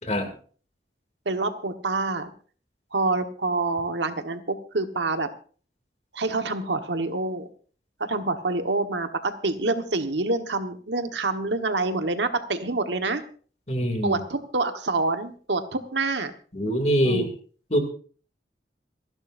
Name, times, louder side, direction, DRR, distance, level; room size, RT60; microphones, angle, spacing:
voice 1, 1.2-2.3 2.9-5.3 6.1-7.5 8.0-13.2 14.0-16.3 17.0-17.3, right 3 dB, 85° right, 8 dB, 1.4 m, -27 dB
voice 2, 13.7-14.2 16.5-17.3 17.7-17.8, equal, 40° left, 5 dB, 2.7 m, -24 dB
27.0 x 11.5 x 2.7 m, 0.42 s
head